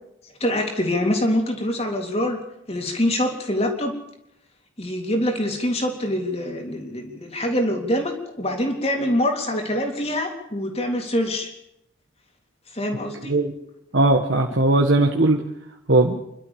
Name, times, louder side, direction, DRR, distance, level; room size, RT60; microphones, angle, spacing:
voice 1, 0.4-2.4 2.7-4.0 4.8-11.5 12.7-13.3, left 1 dB, 30° left, 3 dB, 3.5 m, -24 dB
voice 2, 13.9-15.4 15.9-16.2, right 2 dB, 70° right, 1 dB, 1.8 m, -18 dB
29.0 x 12.5 x 7.2 m, 0.79 s
head